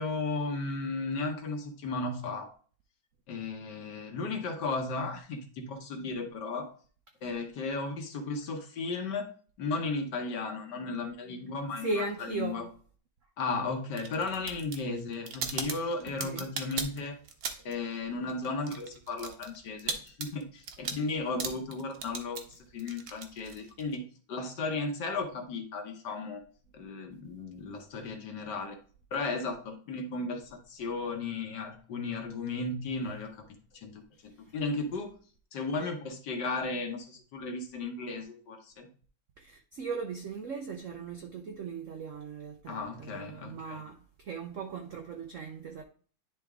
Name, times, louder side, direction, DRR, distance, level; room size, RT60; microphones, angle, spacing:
voice 1, 0.0-2.5 3.3-6.7 7.2-9.3 9.6-12.0 12.3-12.6 13.4-17.2 17.6-26.4 26.7-28.8 29.1-33.5 33.7-35.1 35.5-38.9 42.7-43.8, left 3 dB, 60° left, 1.5 m, -35 dB
voice 2, 11.8-12.7 16.1-16.5 34.5-34.6 39.4-45.8, right 4 dB, 90° right, 0.6 m, -38 dB
sound 1, 13.9-17.8 18.1-24.0, right 5 dB, 55° right, 1.1 m, -38 dB
10.0 x 3.5 x 3.5 m
omnidirectional pair, 2.2 m